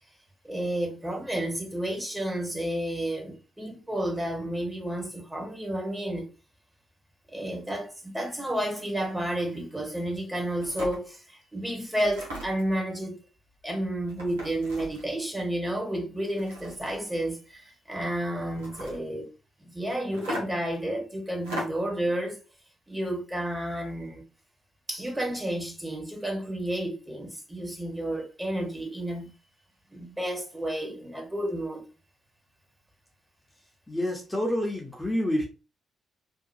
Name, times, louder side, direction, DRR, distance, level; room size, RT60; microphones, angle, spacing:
voice 1, 0.4-6.3 7.3-13.2 13.6-19.3 19.6-22.4 22.9-24.2 24.9-29.3 29.9-31.8, right 1 dB, 15° right, 1.3 m, -31 dB
sound 1, 10.6-11.0 11.9-12.7 14.1-15.1 16.2-17.1 18.5-19.0 20.1-20.7 21.4-21.9, equal, 85° right, 0.9 m, -37 dB
voice 2, 33.9-35.5, left 1 dB, 15° left, 1.0 m, -28 dB
2.9 x 2.3 x 2.6 m
hypercardioid pair, 40°, 0 cm